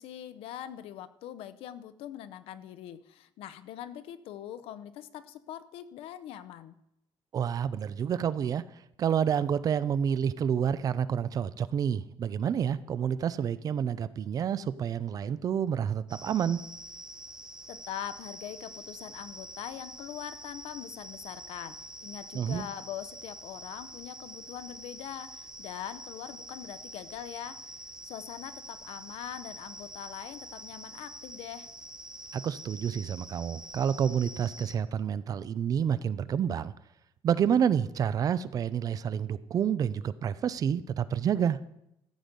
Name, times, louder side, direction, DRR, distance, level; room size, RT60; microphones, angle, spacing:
voice 1, 0.0-6.8 17.7-27.7 28.0-31.7, left 11 dB, 85° left, 12 dB, 0.7 m, -42 dB
voice 2, 7.3-8.6 9.0-16.6 22.3-22.7 32.3-36.7 37.2-41.6, right 8 dB, 40° right, 16 dB, 0.5 m, -29 dB
sound 1, 16.1-34.8, right 1 dB, 10° right, 0.7 m, -46 dB
14.0 x 8.0 x 5.3 m, 0.81 s
cardioid pair, 160°, 9 cm